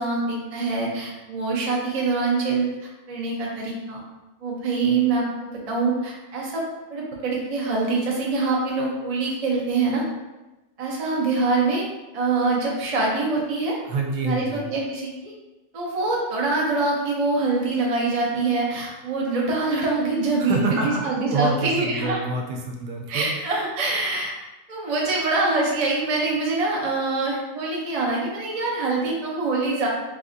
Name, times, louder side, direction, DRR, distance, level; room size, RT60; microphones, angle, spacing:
voice 1, 0.0-2.7 3.1-4.0 4.4-6.6 6.9-10.0 10.8-11.8 12.1-13.8 14.2-15.3 15.7-22.2 23.1-24.3 24.7-29.9, right 3 dB, 55° right, -3 dB, 0.4 m, -24 dB
voice 2, 13.9-14.7 20.4-23.3, right 3 dB, 85° right, 1 dB, 1.1 m, -27 dB
3.9 x 2.5 x 2.6 m, 1.1 s
omnidirectional pair, 1.7 m